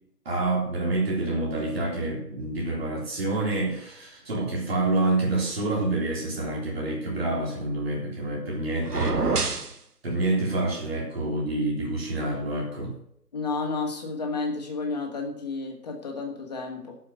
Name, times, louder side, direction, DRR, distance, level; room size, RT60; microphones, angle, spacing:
voice 1, 0.3-9.6 10.0-12.9, right 2 dB, 35° right, -3 dB, 3.6 m, -27 dB
sound 1, 8.8-9.8, right 3 dB, 65° right, 1.8 m, -26 dB
voice 2, 13.3-17.0, left 3 dB, 25° left, 2 dB, 1.9 m, -31 dB
12.0 x 5.7 x 7.9 m, 0.69 s
figure-of-eight pair, 155°, 49 cm